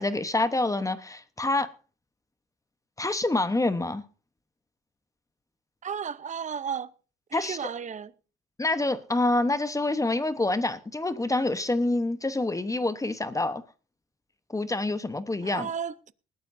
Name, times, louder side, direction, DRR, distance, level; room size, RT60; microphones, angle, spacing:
voice 1, 0.0-1.7 3.0-4.0 7.3-7.7 8.6-13.6 14.5-15.7, left 2 dB, 15° left, 1.0 m, -27 dB
voice 2, 5.8-6.9 7.3-8.1 15.4-16.1, right 7 dB, 40° right, 0.7 m, -34 dB
19.5 x 13.0 x 2.7 m
cardioid pair, 90°, 20 cm